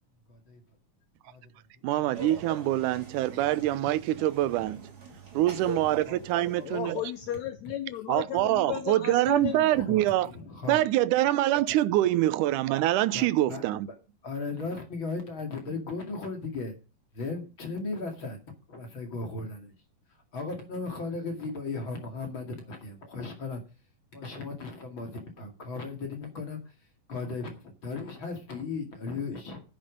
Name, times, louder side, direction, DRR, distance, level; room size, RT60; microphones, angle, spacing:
voice 1, 0.3-0.6 1.3-1.4 3.3-3.4 6.1-6.2 6.4-7.0 9.7-10.9 11.7-11.8 13.1-13.6 14.2-16.7 17.1-18.4 18.7-19.7 20.3-23.6 24.1-26.6 27.1-29.6, left 3 dB, 40° left, 2.7 m, -36 dB
voice 2, 1.8-4.8 5.3-7.0 8.1-10.3 10.7-13.9, right 14 dB, 75° right, 2.0 m, -25 dB
Laughter, 2.1-7.2, right 2 dB, 30° right, 2.9 m, -43 dB
voice 3, 6.6-9.9, left 11 dB, 75° left, 1.7 m, -35 dB
11.0 x 9.0 x 5.2 m
omnidirectional pair, 4.0 m